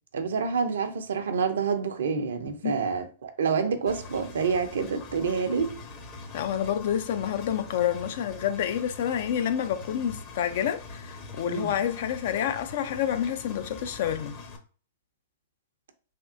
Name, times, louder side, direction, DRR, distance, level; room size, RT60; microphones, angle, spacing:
voice 1, 0.1-5.7 11.5-11.7, right 5 dB, 70° right, 0.5 m, -28 dB
Engine, 3.9-14.6, left 3 dB, 40° left, 0.8 m, -43 dB
voice 2, 6.3-14.3, left 9 dB, 60° left, 0.4 m, -28 dB
3.4 x 2.3 x 2.6 m
hypercardioid pair, 105°, 0 cm